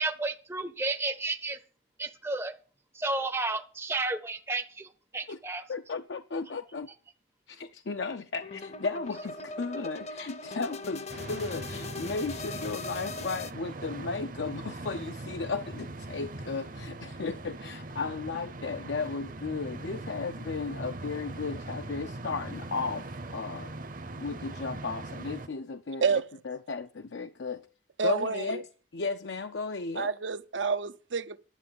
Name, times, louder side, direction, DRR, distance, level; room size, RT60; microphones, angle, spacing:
voice 1, 0.0-1.6 2.0-2.5 2.9-5.6, right 3 dB, 15° right, 0.5 m, -32 dB
voice 2, 5.7-6.9 7.5-23.7 24.2-26.2 26.5-27.6 28.0-28.6 28.9-30.1, left 4 dB, 75° left, 0.6 m, -35 dB
sound 1, 8.4-13.5, left 3 dB, 35° left, 0.7 m, -40 dB
sound 2, 11.1-25.5, right 2 dB, 45° right, 0.8 m, -41 dB
voice 3, 28.0-28.6 30.0-31.4, right 5 dB, 85° right, 0.7 m, -29 dB
11.0 x 7.7 x 7.6 m
head